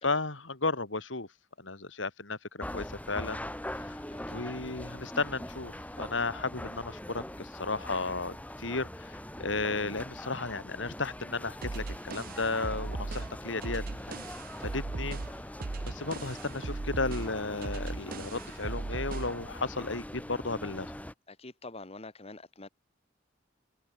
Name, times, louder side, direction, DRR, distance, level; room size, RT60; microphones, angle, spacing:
voice 1, 0.0-1.3 1.6-4.0 4.3-14.1 14.6-15.2 15.8-21.0, left 3 dB, 80° left, 2.9 m, -34 dB
sound 1, 2.6-21.1, left 1 dB, 10° left, 2.0 m, -42 dB
voice 2, 4.1-4.7 9.4-9.5 21.3-22.7, left 2 dB, 30° left, 2.0 m, -47 dB
sound 2, 11.6-19.4, right 3 dB, 50° right, 0.7 m, -38 dB
open air
head